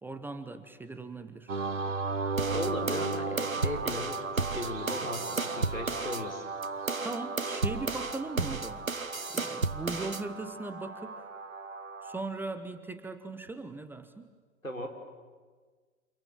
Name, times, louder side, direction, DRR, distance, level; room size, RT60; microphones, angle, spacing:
voice 1, 0.0-1.5 6.8-8.9 9.3-11.3 12.0-14.3, right 3 dB, 5° right, 10 dB, 0.8 m, -39 dB
sound 1, 1.5-12.2, right 4 dB, 65° right, 1.8 m, -36 dB
sound 2, 2.4-6.2 6.6-10.2, right 3 dB, 90° right, 1.1 m, -33 dB
voice 2, 2.5-6.5 14.6-14.9, left 1 dB, 85° left, 2 dB, 4.5 m, -37 dB
29.0 x 27.5 x 7.5 m, 1.5 s
figure-of-eight pair, 110°, 40 cm